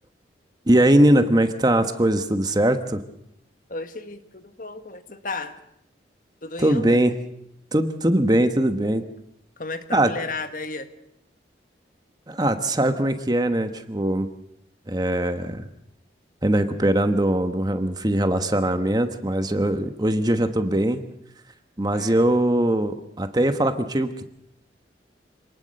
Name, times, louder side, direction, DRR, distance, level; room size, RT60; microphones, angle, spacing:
voice 1, 0.7-3.0 6.6-7.1 7.7-9.0 9.9-10.1 12.3-14.3 14.9-15.7 16.4-21.0 21.8-24.3, right 1 dB, 20° right, 8 dB, 1.2 m, -21 dB
voice 2, 3.7-5.6 6.4-7.0 9.6-10.9 21.9-22.3, left 3 dB, 50° left, 9 dB, 1.5 m, -34 dB
27.0 x 19.0 x 6.6 m, 0.75 s
head